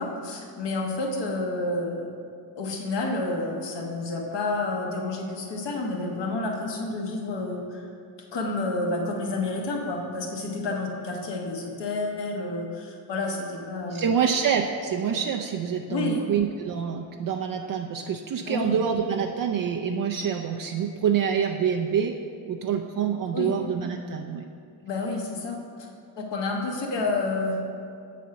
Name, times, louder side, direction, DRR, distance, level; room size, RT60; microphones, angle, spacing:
voice 1, 0.0-2.1 2.6-7.9 8.3-14.1 15.9-16.2 18.5-18.8 23.3-23.6 24.8-25.9 26.2-27.6, left 2 dB, 60° left, 1 dB, 1.3 m, -29 dB
voice 2, 13.9-22.2 22.5-24.5, right 7 dB, 45° right, 2 dB, 0.5 m, -26 dB
7.4 x 4.2 x 5.7 m, 2.4 s
supercardioid pair, 55°, 47 cm